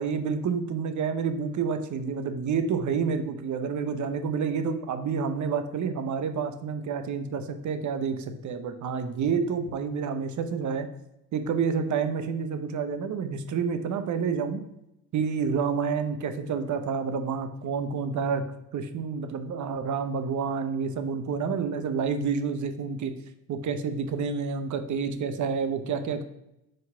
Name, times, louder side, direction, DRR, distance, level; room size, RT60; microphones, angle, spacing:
voice 1, 0.0-10.9 11.3-14.6 15.1-18.4 18.7-23.1 23.5-26.2, right 6 dB, 50° right, 8 dB, 0.8 m, -29 dB
5.1 x 4.1 x 5.5 m, 0.87 s
supercardioid pair, 85°, 39 cm